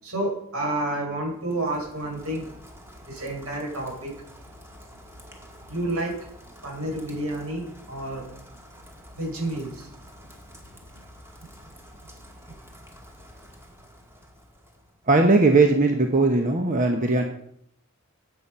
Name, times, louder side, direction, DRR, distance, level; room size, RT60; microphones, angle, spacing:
voice 1, 0.0-2.5 3.0-4.1 5.7-6.1 6.6-8.3 9.1-9.9 11.4-11.5, right 1 dB, 80° right, -2 dB, 6.3 m, -30 dB
Rain, 1.3-15.1, equal, 10° right, 2.1 m, -48 dB
voice 2, 15.1-17.2, right 3 dB, 35° right, 4 dB, 1.1 m, -19 dB
15.0 x 9.2 x 5.6 m, 0.69 s
head